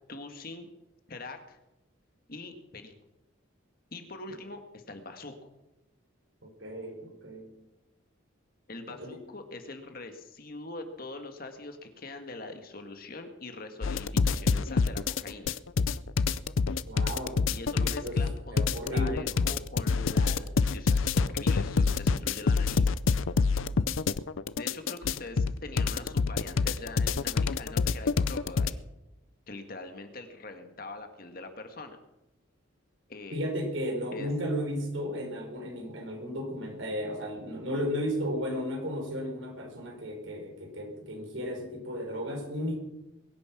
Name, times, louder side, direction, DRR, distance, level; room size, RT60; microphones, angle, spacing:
voice 1, 0.1-0.7 1.1-1.6 2.3-2.9 3.9-5.5 8.7-15.5 17.5-18.7 18.9-23.0 24.6-28.8 29.5-32.0 33.1-33.4 34.1-34.3, left 2 dB, 45° left, 6 dB, 1.8 m, -43 dB
voice 2, 6.4-7.5 8.9-9.2 16.9-17.4 17.7-18.2 18.5-19.5 33.3-42.8, equal, 75° right, 3 dB, 4.4 m, -34 dB
sound 1, 13.8-28.7, left 4 dB, 80° left, 0.5 m, -26 dB
22.0 x 9.7 x 6.0 m, 0.95 s
head